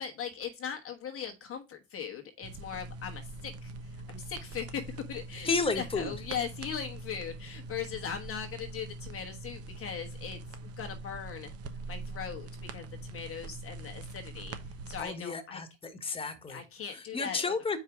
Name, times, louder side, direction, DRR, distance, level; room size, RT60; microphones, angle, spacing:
voice 1, 0.0-3.7 4.1-5.5 5.7-11.5 11.9-14.6 14.9-15.6 16.0-16.2 16.5-17.5, left 7 dB, 40° left, 3 dB, 1.2 m, -39 dB
sound 1, 2.4-15.0, right 2 dB, 40° right, 1.2 m, -43 dB
voice 2, 5.4-6.1 15.0-16.6 16.9-17.8, left 4 dB, 15° left, 5 dB, 1.5 m, -32 dB
4.9 x 4.6 x 5.9 m, 0.27 s
hypercardioid pair, 85°, 35 cm